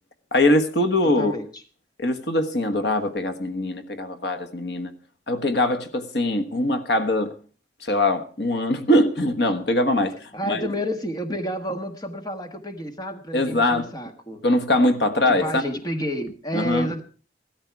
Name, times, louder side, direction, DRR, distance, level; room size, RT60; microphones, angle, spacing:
voice 1, 0.3-1.3 2.0-4.9 5.3-7.3 7.8-10.2 10.5-10.7 13.3-13.9 14.4-15.6 16.5-16.9, left 1 dB, 65° left, 1.3 m, -22 dB
voice 2, 1.0-1.5 10.3-14.4 15.3-17.0, equal, 20° left, 1.3 m, -30 dB
17.0 x 13.5 x 4.7 m
head